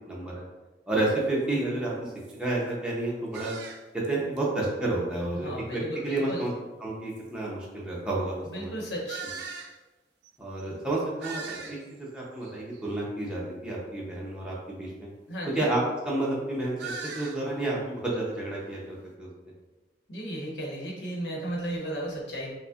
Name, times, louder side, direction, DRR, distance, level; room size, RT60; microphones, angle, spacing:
voice 1, 0.1-0.4 0.9-2.1 2.4-3.5 3.9-6.5 6.8-8.7 9.2-9.3 10.4-15.1 15.5-19.3, right 2 dB, 5° right, -6 dB, 0.6 m, -30 dB
sound 1, 1.1-1.2 1.8-1.9 2.2-2.4 3.3-4.1 4.4-4.5 6.2-6.3 7.1-7.2 9.1-9.7 10.2-10.3 10.6-10.7 10.9-12.0 12.4-12.8 16.8-17.4, right 5 dB, 80° right, 0.4 m, -40 dB
voice 2, 5.4-6.5 8.5-9.3 15.3-15.7 20.1-22.5, right 1 dB, 85° left, -3 dB, 1.0 m, -34 dB
5.2 x 2.1 x 2.4 m, 1.2 s
head